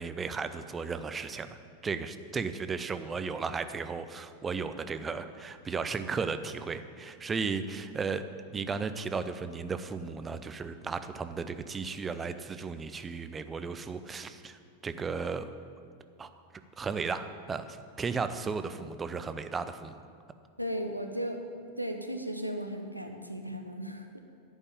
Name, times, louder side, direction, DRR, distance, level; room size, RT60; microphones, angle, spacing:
voice 1, 0.0-1.6 1.8-8.2 8.5-15.5 16.2-16.3 16.8-20.0, right 5 dB, 15° right, 10 dB, 0.5 m, -35 dB
voice 2, 20.6-21.4 21.8-24.2, equal, 90° right, 5 dB, 0.8 m, -36 dB
11.0 x 5.4 x 8.5 m, 2.2 s
figure-of-eight pair, 90°, 0 cm